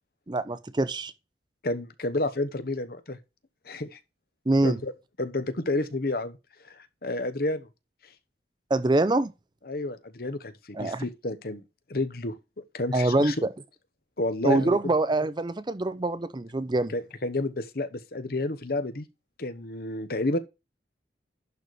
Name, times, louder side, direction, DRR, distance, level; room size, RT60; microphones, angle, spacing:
voice 1, 0.3-1.1 4.5-4.8 8.7-9.3 10.7-11.0 12.9-13.5 14.4-16.9, right 2 dB, 25° right, 0.5 m, -24 dB
voice 2, 1.6-3.2 3.6-4.0 4.6-4.9 5.2-6.4 6.6-7.7 9.7-11.6 11.9-13.3 14.2-14.9 16.9-19.1 19.4-20.4, left 2 dB, 55° left, 1.0 m, -30 dB
11.0 x 4.2 x 4.7 m
head